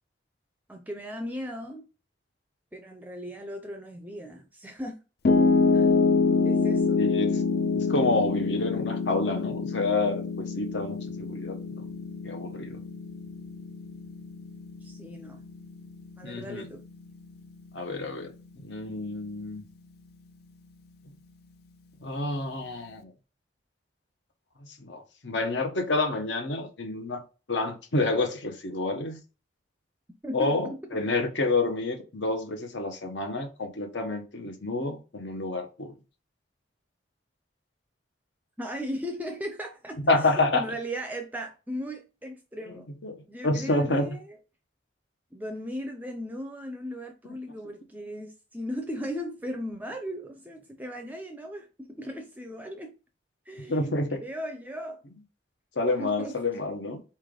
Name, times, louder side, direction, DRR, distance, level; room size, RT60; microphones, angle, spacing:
voice 1, 0.7-1.9 2.7-5.0 5.7-6.0 6.4-7.0 14.8-15.4 16.2-16.8 30.2-31.0 38.6-42.9 43.3-44.4 45.3-52.9 53.5-55.0 56.0-56.4, equal, 10° right, 0.4 m, -37 dB
Piano, 5.2-17.4, left 4 dB, 60° left, 0.5 m, -26 dB
voice 2, 7.0-7.3 7.7-11.6 12.2-12.8 16.2-16.7 17.7-19.6 22.0-23.1 24.8-27.2 27.5-29.2 30.3-35.9 40.0-40.6 43.0-43.1 43.4-44.1 53.7-54.2 55.8-57.0, left 2 dB, 75° left, 1.0 m, -28 dB
4.3 x 3.3 x 3.7 m
head